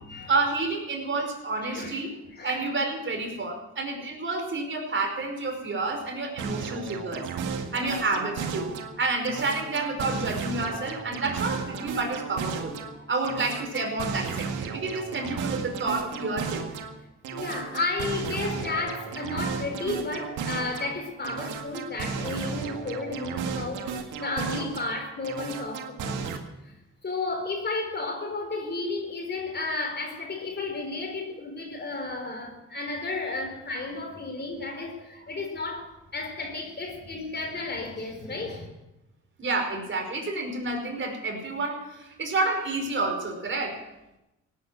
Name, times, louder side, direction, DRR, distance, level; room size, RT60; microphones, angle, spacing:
voice 1, 0.3-2.1 2.4-12.8 13.1-16.8 39.4-43.8, right 3 dB, 40° right, 5.1 m, -29 dB
voice 2, 1.6-2.7 17.3-26.3 26.6-26.7 27.0-38.7, left 3 dB, 35° left, 4.4 m, -33 dB
sound 1, 6.4-8.9 9.2-12.9 13.2-16.9 17.2-20.9 21.2-24.9 25.2-26.4, right 6 dB, 90° right, 1.9 m, -34 dB
17.0 x 9.6 x 7.9 m
cardioid pair, 90°, 30 cm